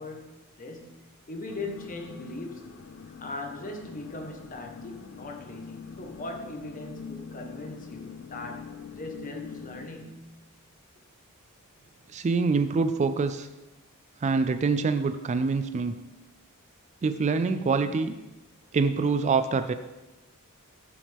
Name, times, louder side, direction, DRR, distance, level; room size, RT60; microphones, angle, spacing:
voice 1, 0.0-2.7 3.2-10.4, left 2 dB, 40° left, 3 dB, 1.3 m, -40 dB
sound 1, 1.5-9.9, left 6 dB, 55° left, 0.5 m, -44 dB
voice 2, 12.1-13.5 14.2-16.0 17.0-18.2 18.7-19.7, right 4 dB, 30° right, 10 dB, 0.3 m, -25 dB
14.5 x 5.9 x 3.6 m, 1.1 s
head